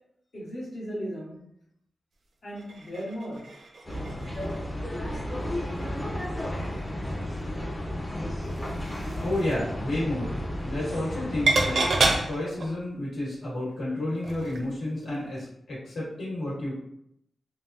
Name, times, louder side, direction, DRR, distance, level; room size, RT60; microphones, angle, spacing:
voice 1, 0.3-1.4 2.4-3.4, equal, 60° left, -6 dB, 1.1 m, -36 dB
sound 1, 2.6-4.7 5.1-5.3 5.7-6.7 7.1-7.2 8.3-9.7 10.9-11.2 11.5-12.8 14.2-14.7 15.0-15.1, right 2 dB, 70° right, 0.4 m, -30 dB
sound 2, 3.8-12.2, left 1 dB, 15° left, 0.5 m, -33 dB
voice 2, 9.2-10.3 10.6-11.8 12.3-16.8, left 1 dB, 75° left, -7 dB, 1.4 m, -31 dB
3.3 x 2.0 x 2.6 m, 0.74 s
wide cardioid pair, 110°, 0 cm